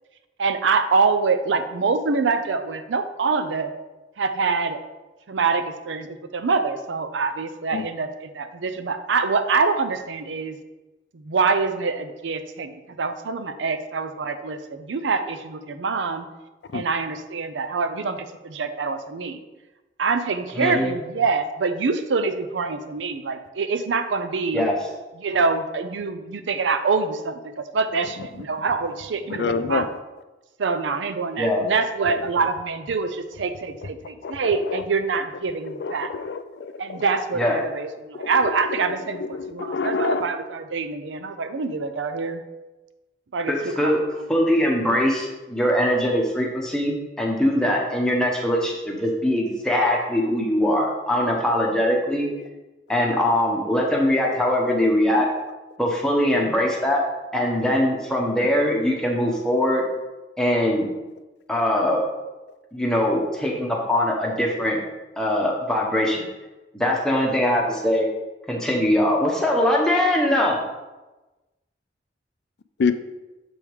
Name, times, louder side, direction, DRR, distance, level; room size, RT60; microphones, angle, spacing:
voice 1, 0.4-3.7 4.2-4.8 5.3-6.1 6.3-10.6 11.1-16.3 16.7-19.4 20.0-24.7 25.2-29.9 30.6-36.1 36.8-42.4 43.3-43.5 43.8-44.2, right 4 dB, 90° right, 9 dB, 0.5 m, -25 dB
voice 2, 20.5-20.9 24.5-24.8 31.4-31.6 37.4-37.6 43.5-44.0 44.3-52.3 52.9-55.3 55.8-57.0 57.3-59.8 60.4-60.9 61.5-62.1 62.7-64.8 65.2-66.3 66.7-68.1 68.5-70.6, left 1 dB, 5° left, -2 dB, 0.9 m, -22 dB
voice 3, 29.3-29.8 32.1-32.2 34.2-34.8 35.8-37.0 38.2-38.5 39.3-40.2 72.8-72.9, left 5 dB, 65° left, 10 dB, 0.4 m, -27 dB
7.0 x 3.5 x 4.7 m, 1.1 s
head